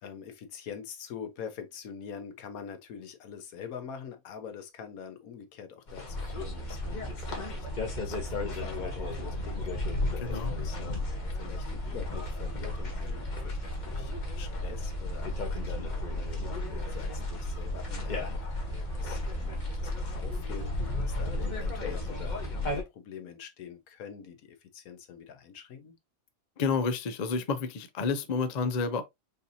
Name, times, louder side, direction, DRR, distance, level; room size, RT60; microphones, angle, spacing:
voice 1, 0.0-7.7 8.0-18.6 19.0-26.0, left 7 dB, 85° left, 1.3 m, -45 dB
sound 1, 5.9-22.8, left 3 dB, 35° left, 1.0 m, -37 dB
sound 2, 6.1-22.6, equal, ahead, 1.1 m, -36 dB
voice 2, 10.2-10.6 26.6-29.0, left 5 dB, 55° left, 0.4 m, -30 dB
5.2 x 2.7 x 2.7 m
omnidirectional pair, 1.5 m